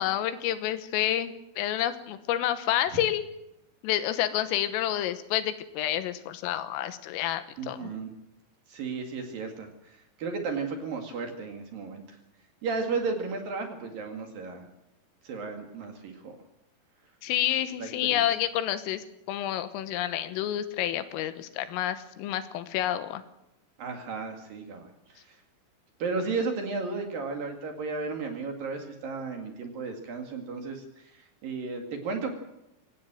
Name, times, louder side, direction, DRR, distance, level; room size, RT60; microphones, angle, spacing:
voice 1, 0.0-3.3 3.8-7.9 17.2-23.2, left 12 dB, 80° left, 12 dB, 3.7 m, -29 dB
voice 2, 7.6-8.1 8.7-9.7 10.2-12.0 12.6-14.7 15.2-16.3 17.8-18.3 23.8-24.9 26.0-31.1 31.4-32.4, right 4 dB, 55° right, 4 dB, 3.2 m, -34 dB
23.0 x 18.0 x 7.6 m, 0.88 s
omnidirectional pair, 5.9 m